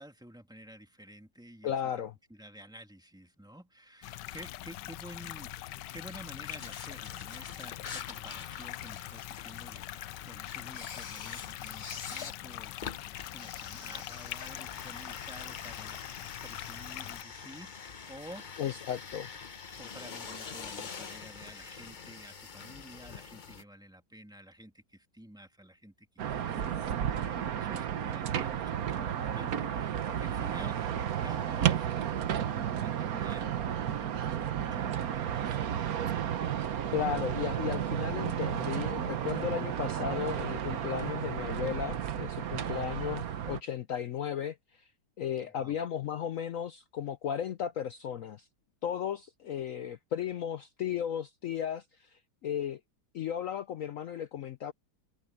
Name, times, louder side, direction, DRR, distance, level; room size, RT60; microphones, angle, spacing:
voice 1, 0.0-1.7 2.3-18.5 19.7-26.1 26.3-30.8 31.2-35.7 45.4-45.8, right 1 dB, ahead, 2.7 m, -51 dB
voice 2, 1.6-2.1 18.6-19.3 36.9-44.9 45.2-48.5 48.8-52.8 53.1-54.7, left 9 dB, 60° left, 0.9 m, -35 dB
sound 1, 4.0-17.2, left 15 dB, 85° left, 1.2 m, -42 dB
sound 2, 6.5-23.6, left 6 dB, 40° left, 0.8 m, -45 dB
sound 3, 26.2-43.6, right 9 dB, 60° right, 1.4 m, -32 dB
omnidirectional pair, 1.9 m